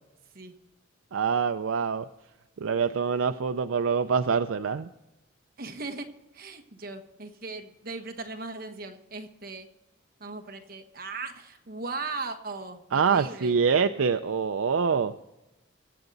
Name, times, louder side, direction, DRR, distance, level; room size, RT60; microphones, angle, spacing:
voice 1, 1.1-2.1 2.6-4.9 12.9-15.1, right 6 dB, 85° right, 8 dB, 0.5 m, -25 dB
voice 2, 5.6-6.1 6.3-9.7 10.2-13.6, right 3 dB, 50° right, 6 dB, 1.2 m, -38 dB
23.0 x 7.8 x 4.0 m, 0.98 s
head